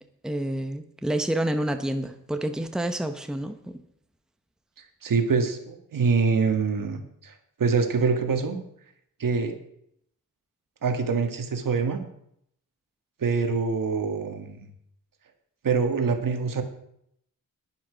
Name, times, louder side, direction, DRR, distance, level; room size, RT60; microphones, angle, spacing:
voice 1, 0.2-3.8, right 1 dB, ahead, 7 dB, 0.9 m, -28 dB
voice 2, 5.0-7.3 7.6-8.6 9.2-9.6 10.8-12.0 13.2-14.6 15.6-16.6, right 5 dB, 65° right, 6 dB, 1.8 m, -25 dB
11.5 x 10.5 x 5.1 m, 0.72 s
wide cardioid pair, 110°, 35 cm